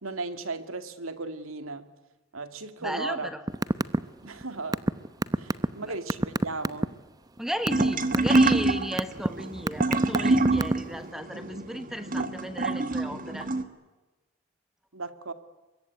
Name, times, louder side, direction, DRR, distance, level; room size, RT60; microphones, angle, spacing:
voice 1, 0.0-1.9 2.3-3.3 4.2-4.8 5.4-6.9 14.9-15.3, right 3 dB, 80° right, 10 dB, 2.3 m, -36 dB
voice 2, 2.8-3.4 5.8-5.9 7.4-13.5, equal, ahead, 10 dB, 1.2 m, -35 dB
sound 1, 3.5-4.0 4.2-6.8 7.4-7.8 8.1-8.5 9.0-9.3 9.7-10.9, right 1 dB, 20° right, 0.8 m, -24 dB
sound 2, 7.7-13.6, right 2 dB, 40° right, 1.7 m, -26 dB
24.5 x 22.5 x 9.5 m, 1.1 s
head